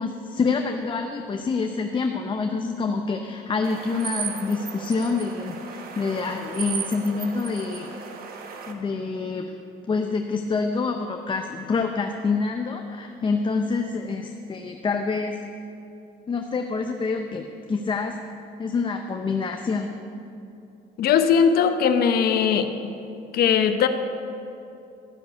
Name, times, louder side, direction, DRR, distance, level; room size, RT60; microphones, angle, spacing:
voice 1, 0.0-8.1 8.7-9.6 9.9-15.4 16.3-18.2 18.6-19.9, left 4 dB, 30° left, 5 dB, 0.6 m, -27 dB
sound 1, 3.6-8.7, right 6 dB, 60° right, 1.2 m, -35 dB
voice 2, 21.0-22.7 23.3-23.9, left 7 dB, 65° left, 8 dB, 0.9 m, -19 dB
13.0 x 6.7 x 8.1 m, 2.7 s
cardioid pair, 110°, 17 cm